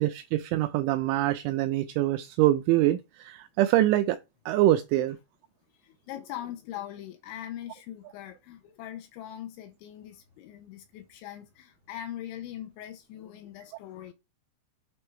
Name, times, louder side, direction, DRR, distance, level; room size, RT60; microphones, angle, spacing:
voice 1, 0.0-4.2 4.5-5.2, right 14 dB, 85° right, 2.7 m, -24 dB
voice 2, 5.7-14.1, left 11 dB, 80° left, 2.8 m, -41 dB
8.6 x 4.4 x 4.6 m
omnidirectional pair, 5.9 m